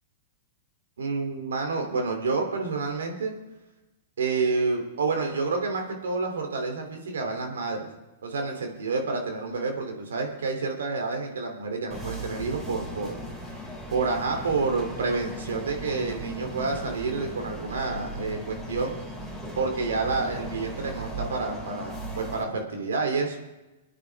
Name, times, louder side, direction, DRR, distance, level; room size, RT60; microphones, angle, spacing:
voice 1, 1.0-3.3 4.2-7.9 8.2-13.2 13.9-19.0 19.6-23.4, right 4 dB, 80° right, 3 dB, 2.9 m, -29 dB
sound 1, 11.9-22.4, right 1 dB, 20° right, 3.6 m, -37 dB
22.0 x 9.8 x 3.5 m, 1.1 s
hypercardioid pair, 120°, 0 cm